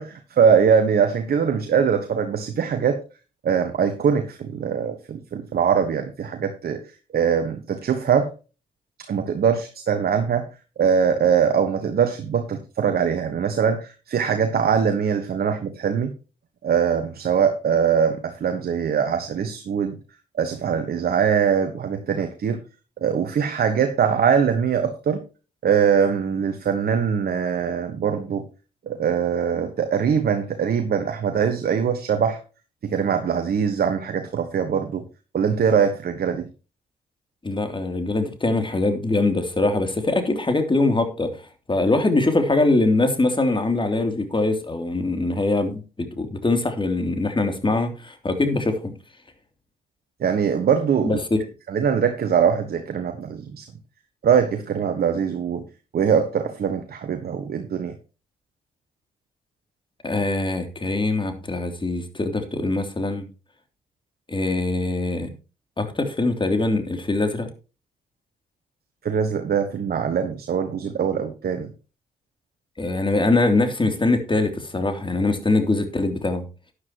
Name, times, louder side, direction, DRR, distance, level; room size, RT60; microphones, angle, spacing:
voice 1, 0.0-3.0 3.4-6.8 7.1-8.3 9.1-10.4 10.8-16.1 16.6-19.9 20.4-22.6 23.0-25.2 25.6-28.4 28.9-32.4 32.8-35.0 35.3-36.5 50.2-51.1 51.7-53.6 54.2-55.6 55.9-57.9 69.0-71.7, right 7 dB, 60° right, 1.3 m, -22 dB
voice 2, 37.4-41.3 41.7-45.8 46.2-48.9 51.0-51.4 60.0-63.2 64.3-65.3 65.8-67.5 72.8-76.4, left 2 dB, 25° left, 3.0 m, -22 dB
12.0 x 9.8 x 3.0 m
hypercardioid pair, 45°, 18 cm